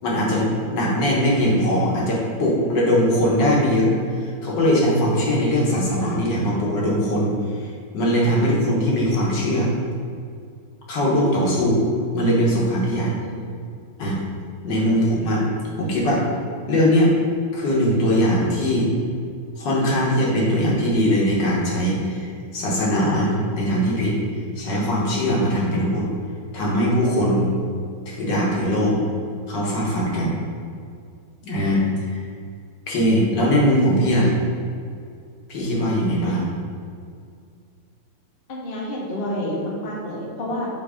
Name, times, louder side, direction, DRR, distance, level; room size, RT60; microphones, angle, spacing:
voice 1, 0.0-9.7 10.9-11.8 12.1-13.2 14.0-14.2 14.6-15.4 15.8-16.3 16.7-17.2 17.5-18.9 19.6-24.2 24.6-26.1 26.5-27.5 28.1-29.0 29.5-30.4 31.4-32.2 32.9-34.3 35.5-36.5, equal, 70° left, -4 dB, 1.8 m, -21 dB
voice 2, 13.2-13.6 14.7-14.9 31.6-31.9 38.5-40.7, left 1 dB, 40° left, -4 dB, 1.0 m, -30 dB
6.0 x 3.3 x 4.9 m, 2.3 s
omnidirectional pair, 2.1 m